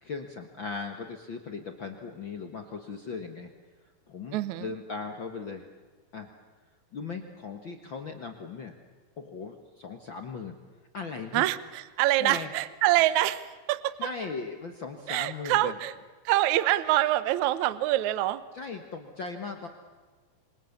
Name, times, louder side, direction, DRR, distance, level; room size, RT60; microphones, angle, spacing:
voice 1, 0.0-3.5 4.1-5.7 6.1-6.3 6.9-8.7 9.2-10.6 10.9-11.5 12.2-12.5 14.0-15.8 18.5-19.7, left 4 dB, 60° left, 5 dB, 1.2 m, -38 dB
voice 2, 4.3-4.7 11.3-13.9 15.1-15.9 16.3-18.4, right 15 dB, 75° right, 16 dB, 1.8 m, -25 dB
27.0 x 24.5 x 7.2 m, 1.4 s
omnidirectional pair, 4.4 m